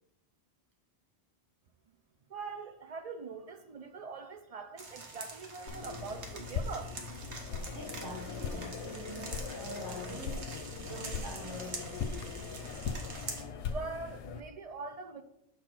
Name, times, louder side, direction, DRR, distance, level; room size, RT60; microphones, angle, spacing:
voice 1, 2.3-7.3 13.5-15.2, right 4 dB, 60° right, 0.4 m, -43 dB
sound 1, 4.8-13.4, right 3 dB, 75° right, 1.4 m, -46 dB
sound 2, 5.7-14.4, left 5 dB, 85° left, 0.9 m, -40 dB
voice 2, 7.7-10.5 10.8-12.3, right 2 dB, 20° right, 1.4 m, -45 dB
6.8 x 4.1 x 4.5 m
omnidirectional pair, 1.1 m